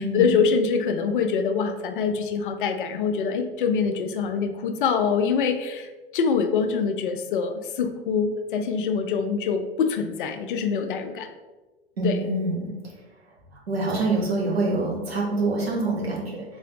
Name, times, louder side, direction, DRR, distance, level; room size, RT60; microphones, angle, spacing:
voice 1, 0.0-11.3 12.0-12.3, left 6 dB, 55° left, 7 dB, 0.5 m, -25 dB
voice 2, 12.0-12.7 13.7-16.4, right 2 dB, 75° right, -3 dB, 1.3 m, -25 dB
3.7 x 3.5 x 3.3 m, 1.2 s
figure-of-eight pair, 90°, 31 cm